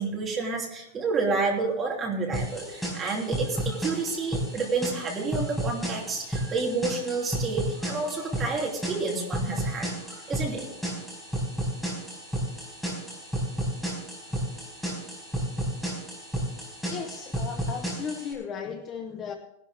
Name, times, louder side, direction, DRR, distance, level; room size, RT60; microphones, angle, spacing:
voice 1, 0.0-10.7, right 4 dB, 15° right, -2 dB, 3.0 m, -30 dB
sound 1, 2.3-18.3, right 1 dB, 5° left, 4.5 m, -32 dB
voice 2, 16.9-19.3, left 6 dB, 20° left, 6 dB, 0.8 m, -36 dB
19.0 x 12.0 x 3.4 m, 0.80 s
supercardioid pair, 175°, 0 cm